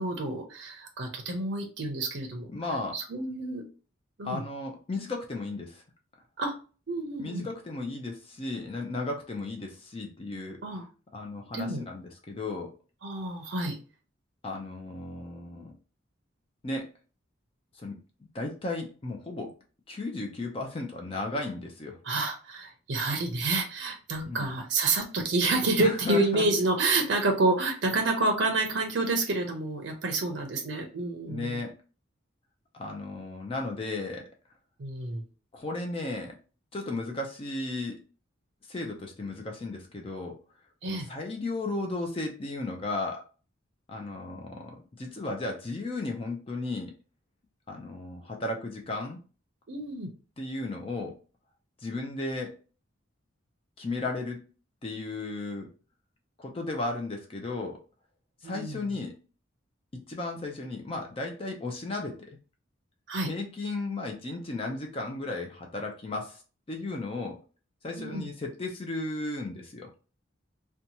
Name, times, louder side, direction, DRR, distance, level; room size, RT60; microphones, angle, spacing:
voice 1, 0.0-2.5 2.9-3.6 4.2-4.4 6.4-6.5 6.9-7.5 10.6-10.9 11.5-11.8 13.0-13.8 22.0-31.6 34.8-35.2 40.8-41.1 49.7-50.1 58.4-58.8 63.1-63.3 68.0-68.3, right 2 dB, 60° right, 3 dB, 0.5 m, -29 dB
voice 2, 2.5-3.0 4.2-5.8 7.2-10.6 11.1-12.7 14.4-15.7 16.6-16.9 17.7-18.0 18.3-19.5 19.9-22.0 24.3-24.5 25.8-26.5 31.3-31.7 32.7-34.2 35.5-36.3 36.7-38.0 38.7-40.4 40.8-43.2 43.9-46.9 47.7-49.2 50.4-51.2 51.8-52.5 53.8-54.4 54.8-55.7 56.4-57.8 58.4-59.1 59.9-62.4 63.3-66.4 66.7-67.4 67.8-69.9, left 2 dB, 30° left, 2 dB, 0.4 m, -35 dB
2.7 x 2.2 x 2.8 m, 0.36 s
head